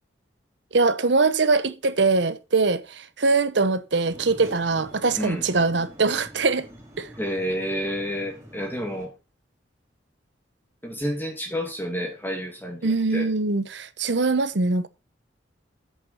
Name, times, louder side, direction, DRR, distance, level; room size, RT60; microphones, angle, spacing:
voice 1, 0.7-6.7 7.0-7.1 12.8-14.9, right 3 dB, 70° right, 0.9 m, -22 dB
sound 1, 4.0-9.1, equal, 15° right, 3.3 m, -45 dB
voice 2, 7.2-9.1 10.8-13.3, equal, 10° left, 2.3 m, -30 dB
8.5 x 7.0 x 5.7 m
head